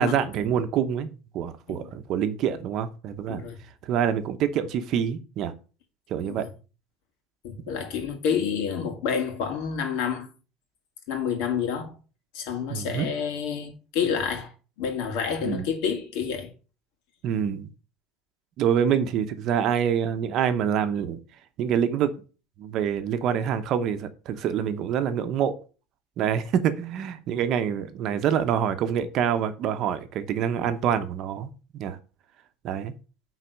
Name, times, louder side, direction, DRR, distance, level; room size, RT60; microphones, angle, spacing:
voice 1, 0.0-3.4 3.8-5.5 6.1-6.5 12.7-13.1 15.4-15.7 17.2-17.7 18.6-21.2 21.6-22.1 22.6-25.5 26.2-32.0 32.6-32.9, right 8 dB, 45° right, 0.8 m, -26 dB
voice 2, 3.3-3.6 6.2-6.5 7.4-10.3 11.1-11.9 12.3-14.5 14.8-16.5, left 7 dB, 70° left, 2.4 m, -29 dB
9.1 x 4.1 x 5.2 m
cardioid pair, 175°, 0 cm